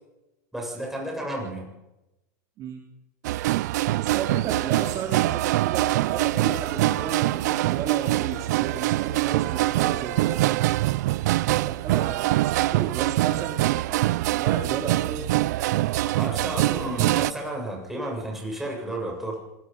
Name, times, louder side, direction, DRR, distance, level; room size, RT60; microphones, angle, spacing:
voice 1, 0.5-1.7 16.0-19.4, right 1 dB, 5° right, -2 dB, 7.8 m, -32 dB
sound 1, 3.2-17.3, right 16 dB, 75° right, 0.6 m, -24 dB
voice 2, 4.0-10.4 11.5-15.2, right 7 dB, 40° right, 2 dB, 3.3 m, -33 dB
26.0 x 19.0 x 5.5 m, 0.95 s
supercardioid pair, 135°, 9 cm